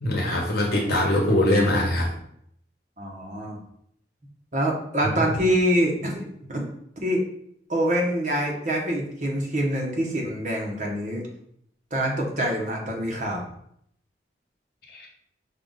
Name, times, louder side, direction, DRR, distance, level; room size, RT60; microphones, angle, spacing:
voice 1, 0.0-2.1 14.9-15.1, left 1 dB, 55° left, -1 dB, 1.0 m, -22 dB
voice 2, 3.0-3.6 4.5-6.7 7.0-7.2 7.7-11.2 11.9-13.4, equal, 45° right, -2 dB, 1.0 m, -25 dB
5.5 x 2.4 x 3.9 m, 0.70 s
head